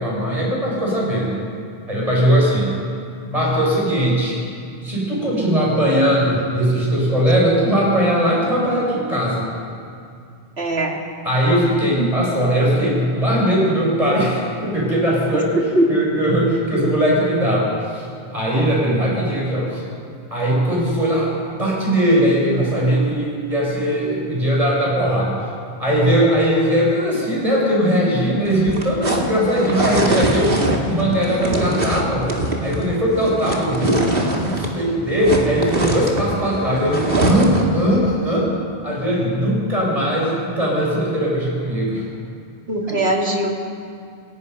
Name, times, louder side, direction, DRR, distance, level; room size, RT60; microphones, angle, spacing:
voice 1, 0.0-1.4 1.9-2.8 3.3-4.4 4.8-9.5 11.2-15.6 15.9-18.1 18.3-19.8 20.3-25.4 25.8-32.3 32.6-38.5 38.8-42.1 42.9-43.0, equal, 35° right, -4 dB, 6.6 m, -19 dB
voice 2, 10.6-11.0 12.0-12.1 15.8-15.9 42.7-43.5, right 1 dB, 85° right, 0 dB, 2.7 m, -20 dB
sound 1, 28.4-34.8 35.0-37.8, right 1 dB, 65° right, 2.4 m, -23 dB
27.5 x 17.5 x 5.5 m, 2.4 s
omnidirectional pair, 1.0 m